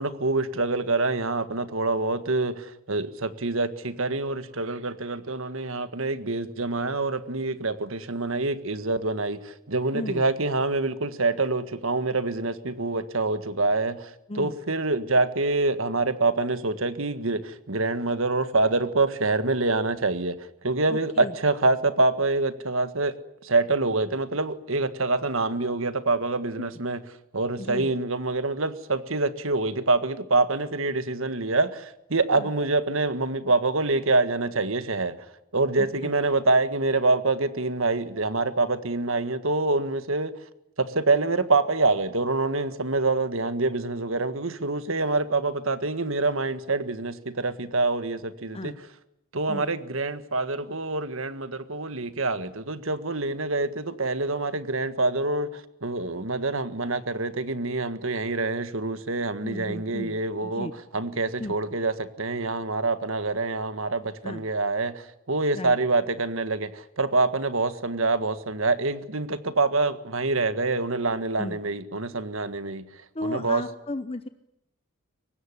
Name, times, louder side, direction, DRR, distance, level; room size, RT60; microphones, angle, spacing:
voice 1, 0.0-14.1 14.4-20.4 20.6-23.1 23.4-27.0 27.3-35.1 35.5-40.3 40.8-48.7 49.3-72.8 73.2-73.6, right 3 dB, 70° right, 1.7 m, -26 dB
voice 2, 9.9-10.2 14.3-14.5 20.9-21.3 26.6-26.7 27.6-27.9 32.3-32.5 35.8-36.1 48.5-48.8 49.5-49.7 59.4-60.7 61.4-61.6 64.2-64.5 65.5-65.7 71.4-71.6 73.1-74.3, left 1 dB, 25° left, 0.9 m, -35 dB
24.0 x 19.0 x 9.9 m
head